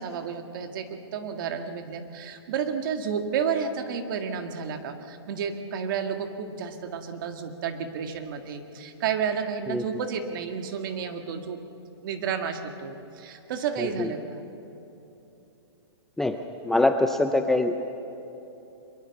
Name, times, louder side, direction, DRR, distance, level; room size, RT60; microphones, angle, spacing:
voice 1, 0.0-11.6 12.0-14.4, right 7 dB, 50° right, 6 dB, 1.9 m, -31 dB
voice 2, 13.8-14.1 16.2-16.4 16.6-17.8, left 2 dB, ahead, 5 dB, 0.4 m, -23 dB
23.5 x 21.5 x 7.2 m, 3.0 s
hypercardioid pair, 160°, 14 cm